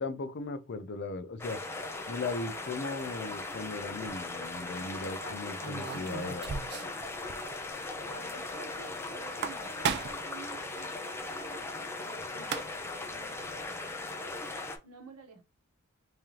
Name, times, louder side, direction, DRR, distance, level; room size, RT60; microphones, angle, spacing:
voice 1, 0.0-1.6 2.1-6.5, left 3 dB, 50° left, 0.5 m, -37 dB
sound 1, 1.4-14.8, left 2 dB, 10° left, 0.6 m, -39 dB
voice 2, 4.9-6.3 6.7-6.9 8.0-13.3 14.8-15.4, right 3 dB, 85° right, 1.2 m, -51 dB
sound 2, 5.6-7.0 7.3-7.4 7.7-7.8 9.2-10.3 12.1-12.2 12.4-13.0, right 6 dB, 50° right, 0.4 m, -35 dB
3.6 x 3.3 x 2.9 m
head